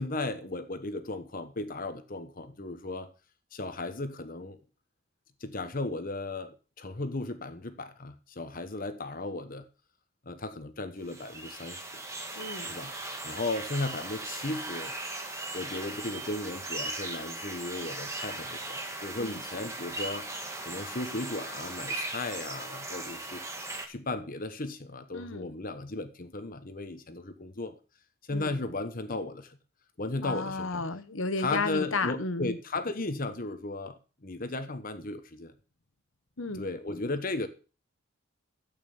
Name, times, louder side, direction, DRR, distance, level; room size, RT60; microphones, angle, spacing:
voice 1, 0.0-3.1 3.5-4.6 5.4-9.6 10.2-12.0 12.7-12.9 13.2-14.9 15.5-20.3 20.6-23.4 23.9-27.7 28.3-29.6 30.0-30.9 31.4-35.5 36.5-37.5, left 2 dB, 40° left, 1.1 m, -35 dB
sound 1, 11.0-23.9, right 2 dB, 15° right, 2.1 m, -38 dB
voice 2, 12.3-12.7 19.2-19.4 25.1-25.5 28.3-28.5 30.2-32.6 36.4-36.7, left 3 dB, 70° left, 1.3 m, -33 dB
12.5 x 8.8 x 7.2 m
head